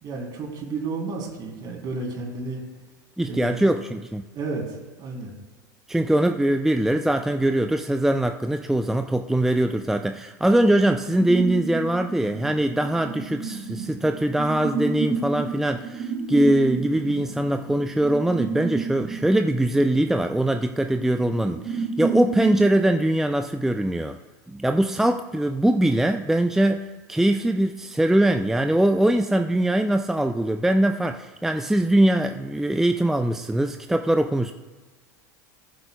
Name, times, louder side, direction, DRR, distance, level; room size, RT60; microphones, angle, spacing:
voice 1, 0.0-2.6 3.2-3.6 4.3-5.3, right 3 dB, 40° right, 0 dB, 3.6 m, -32 dB
voice 2, 3.2-4.2 5.9-24.2 24.5-34.5, right 1 dB, 5° right, 6 dB, 0.5 m, -22 dB
sound 1, 11.2-22.6, right 4 dB, 70° right, 2.7 m, -31 dB
19.5 x 7.7 x 2.4 m, 1.3 s
hypercardioid pair, 90°, 10 cm